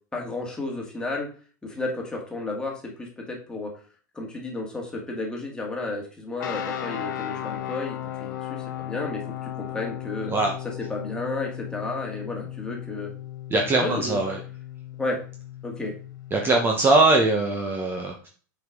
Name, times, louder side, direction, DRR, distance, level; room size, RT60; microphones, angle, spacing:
voice 1, 0.1-1.3 1.6-3.7 4.1-10.3 10.9-13.1 13.8-14.2 15.0-15.2 15.6-15.9, left 2 dB, 10° left, -1 dB, 2.2 m, -32 dB
sound 1, 6.4-16.6, left 11 dB, 80° left, 1.0 m, -36 dB
voice 2, 13.5-14.4 16.3-18.3, right 2 dB, 20° right, 2 dB, 1.1 m, -21 dB
6.0 x 5.2 x 3.8 m, 0.41 s
supercardioid pair, 120°, 10 cm